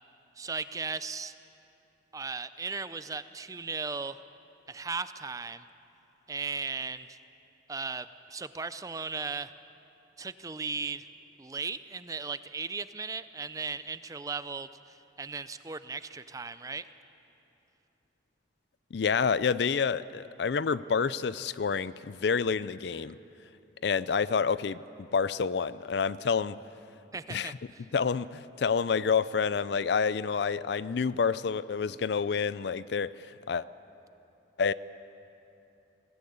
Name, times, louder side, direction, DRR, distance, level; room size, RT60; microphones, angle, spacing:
voice 1, 0.4-1.3 2.1-4.2 4.7-5.6 6.3-7.2 7.7-9.5 10.2-11.1 11.4-14.7 15.2-16.8 27.1-27.5, right 4 dB, 20° right, 13 dB, 0.5 m, -36 dB
voice 2, 18.9-23.2 23.8-26.6 27.3-27.6 27.9-33.7 34.6-34.7, left 5 dB, 60° left, 17 dB, 0.4 m, -28 dB
21.5 x 17.0 x 8.7 m, 2.8 s
head